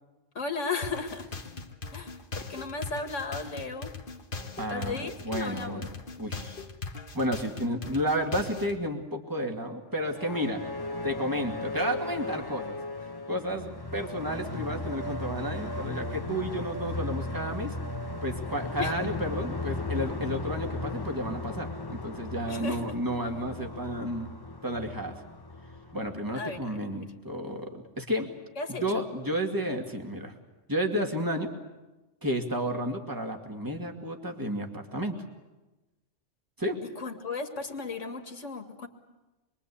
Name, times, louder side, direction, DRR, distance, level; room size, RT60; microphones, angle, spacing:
voice 1, 0.3-1.3 1.9-3.9 4.7-5.9 18.8-19.1 22.5-22.9 26.3-27.0 28.6-29.1 36.8-38.9, left 4 dB, 80° left, 6 dB, 2.4 m, -35 dB
sound 1, 0.8-8.8, left 4 dB, 45° left, 1.5 m, -39 dB
voice 2, 4.6-5.9 6.2-6.6 7.1-10.6 11.0-12.8 13.3-17.7 18.2-24.3 24.6-25.2 25.9-28.3 28.8-30.3 30.7-31.5 32.2-35.2 36.6-36.8, equal, 15° right, 3 dB, 2.3 m, -32 dB
sound 2, 9.9-26.8, left 2 dB, 20° left, 1.0 m, -36 dB
26.0 x 22.5 x 8.5 m, 1.1 s
omnidirectional pair, 1.3 m